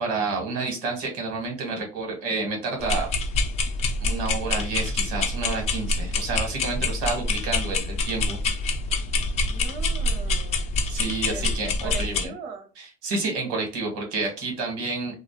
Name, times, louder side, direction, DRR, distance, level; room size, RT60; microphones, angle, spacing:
voice 1, 0.0-3.1 4.0-8.4 10.9-12.3 12.8-15.2, right 3 dB, 70° right, 1.2 m, -29 dB
sound 1, 2.8-12.3, left 3 dB, 35° left, 0.4 m, -26 dB
voice 2, 6.7-7.1 9.4-10.7 11.3-12.7, right 5 dB, 50° right, 0.7 m, -40 dB
2.3 x 2.0 x 2.9 m
supercardioid pair, 130°, 19 cm